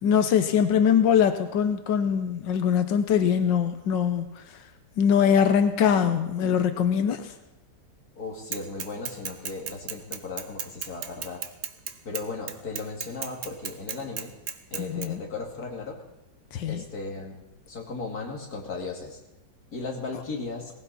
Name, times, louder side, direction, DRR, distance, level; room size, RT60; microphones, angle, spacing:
voice 1, 0.0-4.4 5.0-7.3 14.8-15.2 16.5-16.8, left 8 dB, 85° left, 8 dB, 1.6 m, -22 dB
voice 2, 8.2-11.4 12.0-14.3 14.7-16.0 16.6-19.2 19.7-20.7, left 3 dB, 55° left, -1 dB, 2.9 m, -36 dB
Bicycle / Mechanisms, 8.5-15.0, right 8 dB, 55° right, 1.1 m, -34 dB
18.5 x 16.0 x 4.2 m, 0.94 s
omnidirectional pair, 1.9 m